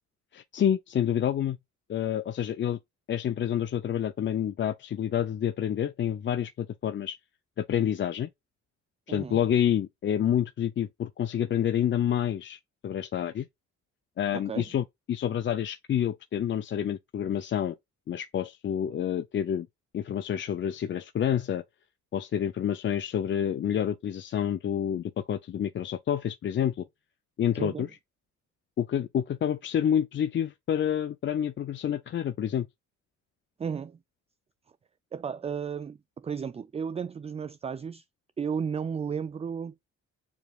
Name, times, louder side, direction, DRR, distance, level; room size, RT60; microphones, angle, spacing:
voice 1, 0.3-1.6 1.9-2.8 3.1-7.2 7.6-8.3 9.1-13.5 14.2-17.8 18.1-19.7 19.9-21.6 22.1-26.9 27.4-27.9 28.8-32.7, left 9 dB, 40° left, 0.5 m, -28 dB
voice 2, 9.1-9.4 14.3-14.7 27.6-27.9 33.6-34.0 35.1-38.0 38.4-39.7, right 6 dB, 20° right, 0.3 m, -34 dB
7.1 x 3.1 x 2.3 m
cardioid pair, 90°, 30 cm